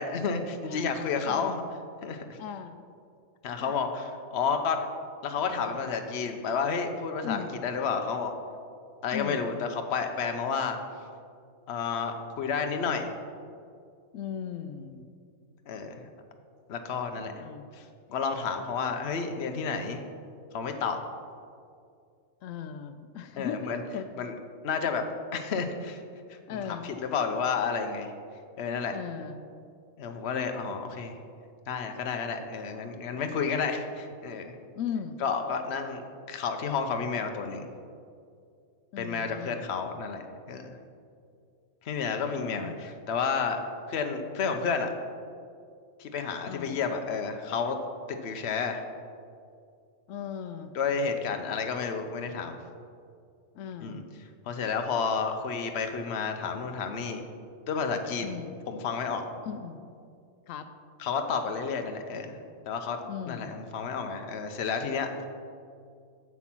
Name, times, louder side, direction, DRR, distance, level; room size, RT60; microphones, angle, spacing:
voice 1, 0.0-1.5 2.0-2.4 3.4-4.8 5.2-8.3 9.0-10.8 11.7-13.1 15.7-16.0 16.7-17.3 18.1-20.0 20.5-21.0 23.4-23.8 24.2-24.4 24.6-25.0 25.3-26.0 26.5-28.1 28.6-29.0 30.0-31.1 31.7-34.5 35.2-36.0 36.3-37.7 39.0-40.8 41.8-43.6 43.9-44.9 46.0-47.8 48.1-48.8 50.7-52.5 53.8-54.0 54.5-57.2 57.7-58.4 58.7-59.2 61.0-62.4 62.7-63.0 63.2-65.3, left 5 dB, 60° left, 5 dB, 1.0 m, -31 dB
voice 2, 1.3-1.6 2.4-2.8 3.6-3.7 7.2-7.6 9.1-9.5 14.1-15.1 17.1-17.7 22.4-24.1 26.5-26.9 28.9-29.4 34.8-35.2 38.9-39.6 42.6-42.8 46.4-46.8 50.1-50.7 53.5-54.0 58.2-58.5 59.5-59.8 60.5-60.7 63.0-63.5, left 8 dB, 90° left, 9 dB, 1.0 m, -38 dB
7.8 x 7.3 x 6.1 m, 2.3 s
omnidirectional pair, 1.3 m